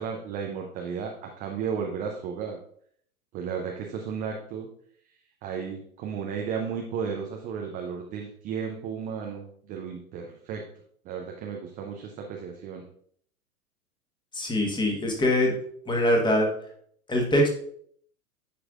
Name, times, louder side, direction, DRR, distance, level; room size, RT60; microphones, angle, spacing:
voice 1, 0.0-2.6 3.3-4.7 5.4-10.7 11.0-12.9, right 6 dB, 20° right, 1 dB, 0.5 m, -34 dB
voice 2, 14.3-15.5 15.9-16.5 17.1-17.5, left 1 dB, 10° left, 1 dB, 1.3 m, -23 dB
10.0 x 4.7 x 2.4 m, 0.63 s
hypercardioid pair, 110°, 45 cm